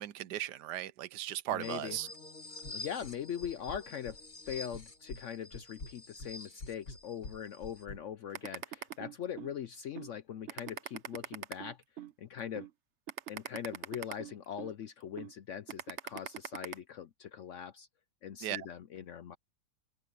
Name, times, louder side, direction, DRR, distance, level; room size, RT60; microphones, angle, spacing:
voice 1, 0.0-2.1 18.4-18.7, right 13 dB, 80° right, 1.3 m, -37 dB
voice 2, 1.5-2.0 2.7-4.2 4.5-11.8 12.2-12.7 13.3-17.9 18.2-19.4, left 9 dB, 65° left, 0.7 m, -41 dB
sound 1, 1.6-7.8, left 2 dB, 30° left, 1.9 m, -49 dB
sound 2, 2.6-3.2 3.4-4.2 4.5-5.2 5.5-8.0, left 2 dB, 80° left, 3.4 m, -46 dB
sound 3, 8.3-9.5 10.0-10.1 10.5-12.1 12.6-12.7 13.1-14.7 15.2-15.3 15.7-16.7, right 9 dB, 50° right, 1.0 m, -41 dB
open air
omnidirectional pair, 1.8 m